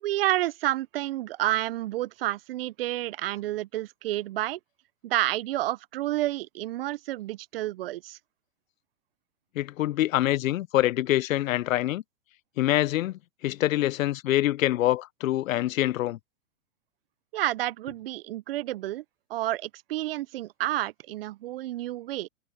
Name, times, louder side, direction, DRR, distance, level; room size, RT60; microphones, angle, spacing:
voice 1, 0.0-4.6 5.0-8.2 17.3-19.0 19.3-22.3, right 15 dB, 50° right, 0.4 m, -30 dB
voice 2, 9.6-12.0 12.6-13.1 13.4-16.2, left 14 dB, 85° left, 0.5 m, -25 dB
hypercardioid pair, 145°, 39 cm